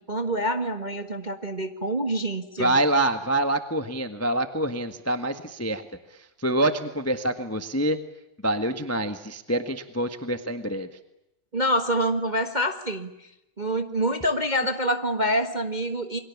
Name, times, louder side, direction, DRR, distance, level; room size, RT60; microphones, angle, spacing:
voice 1, 0.0-2.8 11.5-13.3 13.6-16.2, equal, 25° right, 6 dB, 0.9 m, -26 dB
voice 2, 2.6-5.8 6.1-8.0 8.4-10.9, right 1 dB, 10° left, 8 dB, 0.6 m, -26 dB
28.5 x 23.5 x 7.3 m, 0.86 s
omnidirectional pair, 3.3 m